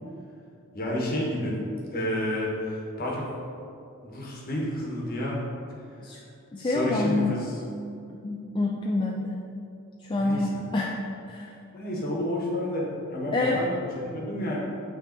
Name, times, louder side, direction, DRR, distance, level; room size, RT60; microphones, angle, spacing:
voice 1, 0.7-1.6 1.9-3.3 4.0-5.4 6.6-7.5 10.1-10.6 11.7-14.6, left 1 dB, 40° left, -4 dB, 1.4 m, -30 dB
voice 2, 6.5-7.4 8.1-9.4 10.0-11.0 11.3-11.5 13.3-13.6, left 2 dB, 20° left, -2 dB, 0.4 m, -27 dB
8.6 x 3.5 x 4.4 m, 2.6 s
head